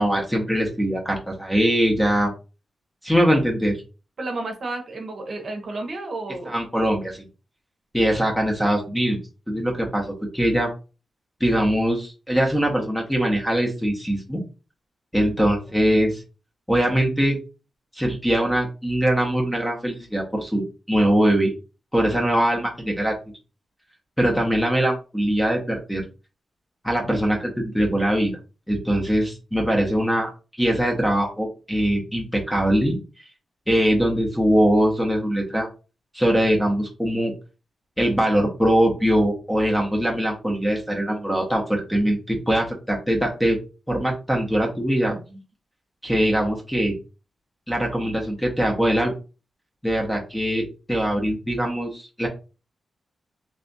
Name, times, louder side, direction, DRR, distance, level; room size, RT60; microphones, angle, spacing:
voice 1, 0.0-2.3 3.0-3.7 6.4-7.3 7.9-9.2 9.5-10.1 10.3-10.7 11.4-14.4 15.1-16.2 16.7-17.4 18.0-21.5 21.9-23.1 24.2-26.0 26.8-28.4 28.7-30.3 30.6-33.0 33.7-35.7 36.1-37.3 38.0-43.6 43.9-45.1 46.0-46.9 47.7-49.1 49.8-52.3, equal, 5° left, 1 dB, 0.8 m, -22 dB
voice 2, 4.2-6.6 15.3-15.5 45.1-45.4, right 2 dB, 45° right, 3 dB, 0.9 m, -32 dB
3.4 x 2.4 x 4.0 m, 0.32 s
wide cardioid pair, 175°, 0 cm